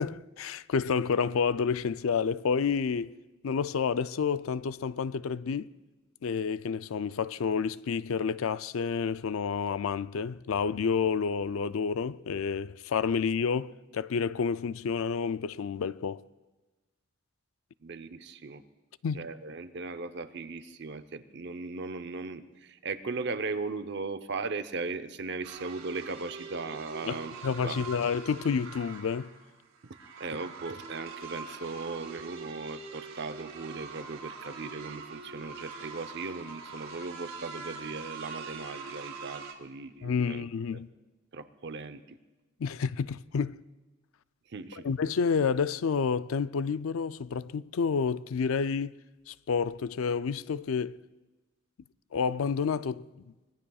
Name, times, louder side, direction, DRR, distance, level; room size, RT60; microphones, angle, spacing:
voice 1, 0.0-3.1 3.4-5.7 6.2-16.2 19.0-19.3 27.1-29.3 40.0-40.9 42.6-43.6 44.8-49.0 49.3-51.0 52.1-53.0, left 6 dB, 85° left, 0.4 m, -29 dB
voice 2, 17.8-18.6 19.1-27.9 29.8-40.5 40.7-40.8 41.3-42.2 44.5-44.9, right 3 dB, 55° right, 0.7 m, -38 dB
sound 1, 25.4-39.5, right 4 dB, 80° right, 2.2 m, -43 dB
25.0 x 21.0 x 2.4 m
head